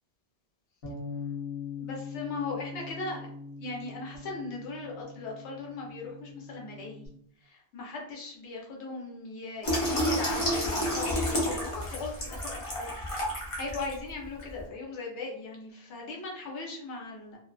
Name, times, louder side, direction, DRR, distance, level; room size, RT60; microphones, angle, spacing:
Bass guitar, 0.8-7.1, left 5 dB, 65° left, 1.0 m, -41 dB
voice 1, 1.8-3.3 3.6-7.1 7.4-13.0 13.5-17.4, left 3 dB, 90° left, -1 dB, 1.0 m, -38 dB
Water tap faucet / Sink (filling or washing), 9.6-13.9 14.4-14.6, equal, 35° left, 0.7 m, -30 dB
2.4 x 2.4 x 2.2 m, 0.65 s
omnidirectional pair, 1.1 m